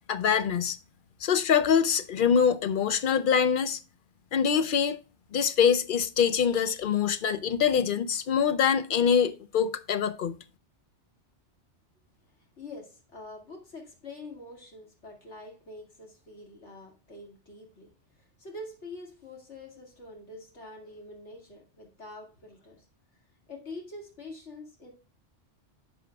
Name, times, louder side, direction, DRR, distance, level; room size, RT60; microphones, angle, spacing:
voice 1, 0.1-0.8 1.2-3.8 4.3-5.0 5.3-10.4, left 7 dB, 55° left, 0.6 m, -24 dB
voice 2, 12.4-22.9 23.5-24.9, left 2 dB, 75° left, 2.5 m, -45 dB
10.5 x 7.0 x 2.3 m
omnidirectional pair, 1.2 m